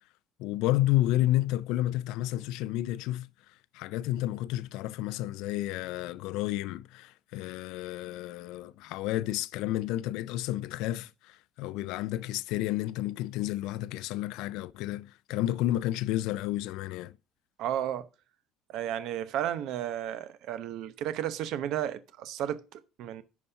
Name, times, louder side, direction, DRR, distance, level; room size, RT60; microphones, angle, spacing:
voice 1, 0.4-3.3 3.7-17.1, left 15 dB, 70° left, 0.3 m, -31 dB
voice 2, 17.6-18.1 18.7-23.2, right 11 dB, 55° right, 0.8 m, -33 dB
11.0 x 4.3 x 5.5 m
cardioid pair, 180°, 0 cm